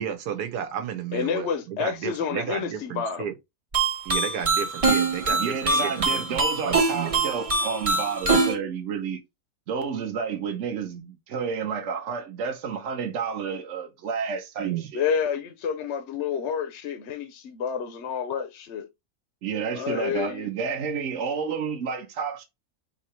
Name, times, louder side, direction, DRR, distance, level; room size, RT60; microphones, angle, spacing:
voice 1, 0.0-3.3 4.0-7.2 14.6-14.9, right 9 dB, 85° right, 1.4 m, -32 dB
voice 2, 1.1-3.3 14.9-18.9 19.7-20.5, left 7 dB, 60° left, 0.8 m, -29 dB
sound 1, 3.7-8.6, right 3 dB, 30° right, 0.6 m, -24 dB
voice 3, 5.4-9.2 9.7-15.0 19.4-22.4, right 6 dB, 55° right, 1.0 m, -30 dB
3.7 x 2.8 x 4.3 m
omnidirectional pair, 1.7 m